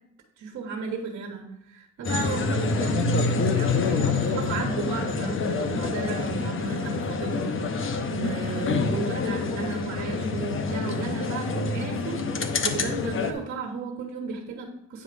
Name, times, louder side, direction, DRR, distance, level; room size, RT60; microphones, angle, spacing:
voice 1, 0.4-12.2 12.6-15.0, right 5 dB, 65° right, 2 dB, 1.5 m, -34 dB
sound 1, 2.0-13.3, left 4 dB, 40° left, 0.9 m, -27 dB
9.2 x 3.1 x 5.1 m, 0.76 s
supercardioid pair, 75°, 30 cm